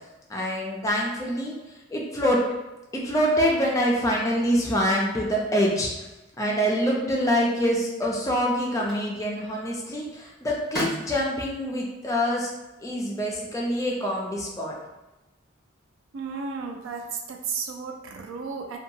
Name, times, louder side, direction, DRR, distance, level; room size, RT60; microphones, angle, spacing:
voice 1, 0.3-1.5 1.9-2.4 2.9-6.1 6.4-12.5 12.8-14.7, equal, 15° left, -3 dB, 0.4 m, -25 dB
sound 1, 7.9-14.1, equal, ahead, 1.2 m, -41 dB
voice 2, 16.1-17.0 17.3-18.8, right 5 dB, 75° right, 3 dB, 0.4 m, -33 dB
2.8 x 2.3 x 2.6 m, 1.0 s
head